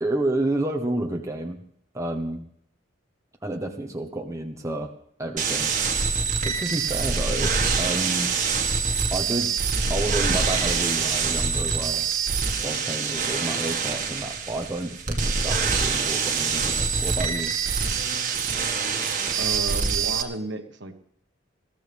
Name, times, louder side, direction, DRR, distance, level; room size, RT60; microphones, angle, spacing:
voice 1, 0.0-1.6 1.9-2.4 3.4-4.9 5.2-5.8 6.4-8.3 9.1-9.6 9.9-12.1 12.6-17.6, right 1 dB, 15° right, 2 dB, 1.3 m, -30 dB
sound 1, 5.4-20.2, right 5 dB, 40° right, 1.9 m, -25 dB
voice 2, 19.4-20.9, right 2 dB, 60° right, 6 dB, 1.6 m, -33 dB
20.5 x 15.0 x 3.6 m, 0.67 s
head